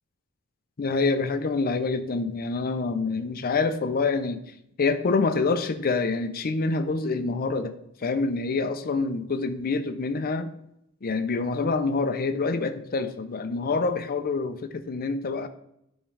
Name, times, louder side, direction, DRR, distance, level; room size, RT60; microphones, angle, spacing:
voice 1, 0.8-4.4 4.8-7.7 8.0-10.5 11.0-15.5, left 4 dB, 45° left, 9 dB, 0.5 m, -26 dB
10.0 x 3.7 x 3.2 m, 0.79 s
head